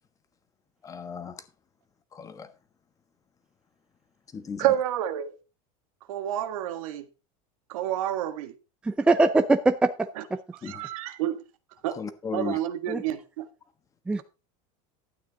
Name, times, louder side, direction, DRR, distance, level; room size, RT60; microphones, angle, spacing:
voice 1, 0.8-1.4 2.1-2.5 4.3-4.7 10.6-10.8 12.0-12.6, left 5 dB, 20° left, 1.3 m, -35 dB
voice 2, 4.6-5.3 6.1-7.1 7.7-8.5 10.2-10.3 10.6-11.4 11.8-12.0 12.3-13.5, right 12 dB, 80° right, 1.6 m, -29 dB
voice 3, 8.8-10.1 12.9-13.0 14.1-14.2, right 3 dB, 5° right, 0.5 m, -22 dB
12.0 x 9.0 x 4.0 m
supercardioid pair, 155°, 17 cm